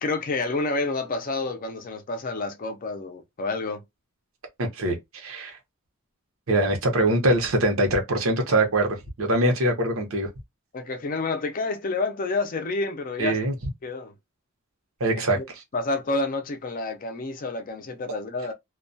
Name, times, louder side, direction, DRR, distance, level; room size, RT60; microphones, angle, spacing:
voice 1, 0.0-3.8 10.7-13.4 13.8-14.1 15.1-15.4 15.7-18.5, left 3 dB, 40° left, 0.4 m, -29 dB
voice 2, 4.6-5.6 6.5-10.3 13.2-13.5 15.0-15.4, right 1 dB, 80° right, 0.8 m, -23 dB
2.2 x 2.2 x 2.5 m
head